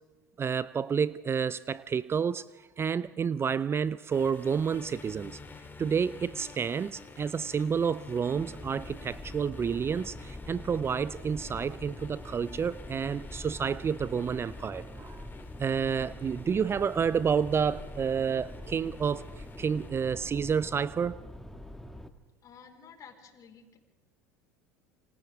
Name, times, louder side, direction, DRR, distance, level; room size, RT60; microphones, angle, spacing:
voice 1, 0.4-2.5 2.8-5.4 5.8-15.3 15.6-19.3 19.6-21.2, right 6 dB, 25° right, 18 dB, 0.6 m, -29 dB
sound 1, 4.1-20.0, left 4 dB, 20° left, 3.1 m, -50 dB
sound 2, 8.4-22.1, left 1 dB, 5° left, 1.8 m, -44 dB
voice 2, 22.4-23.8, left 6 dB, 40° left, 3 dB, 4.7 m, -52 dB
29.0 x 26.0 x 3.6 m, 1.2 s
hypercardioid pair, 80°, 9 cm